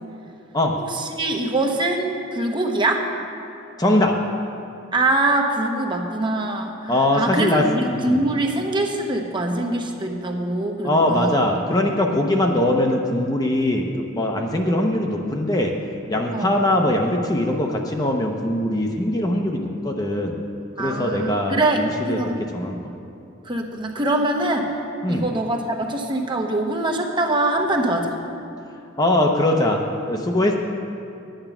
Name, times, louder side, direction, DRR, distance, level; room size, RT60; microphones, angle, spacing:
voice 1, 0.8-3.1 4.9-11.4 16.3-16.5 20.8-22.4 23.4-24.7 25.1-28.1, right 2 dB, 25° right, 2 dB, 0.9 m, -23 dB
voice 2, 3.8-4.2 6.9-8.2 10.8-15.7 16.1-20.4 20.8-22.9 25.0-25.2 29.0-30.6, left 1 dB, 20° left, 2 dB, 0.6 m, -21 dB
10.0 x 8.9 x 5.9 m, 2.6 s
head